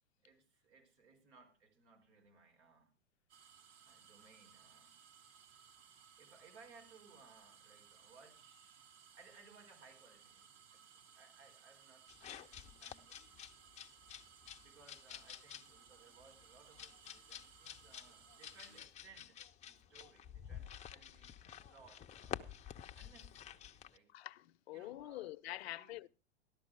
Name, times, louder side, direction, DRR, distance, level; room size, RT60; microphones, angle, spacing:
voice 1, 0.2-2.9 3.8-5.0 6.2-8.8 9.1-13.6 14.6-19.4 19.7-22.4 22.9-24.1 24.7-26.0, right 4 dB, 75° right, 4.7 m, -64 dB
sound 1, 3.3-18.8, right 7 dB, 55° right, 2.9 m, -62 dB
sound 2, 12.1-24.0, left 10 dB, 20° left, 0.6 m, -51 dB
voice 2, 24.1-26.1, left 16 dB, 65° left, 0.7 m, -46 dB
13.5 x 11.5 x 4.7 m
hypercardioid pair, 110°, 34 cm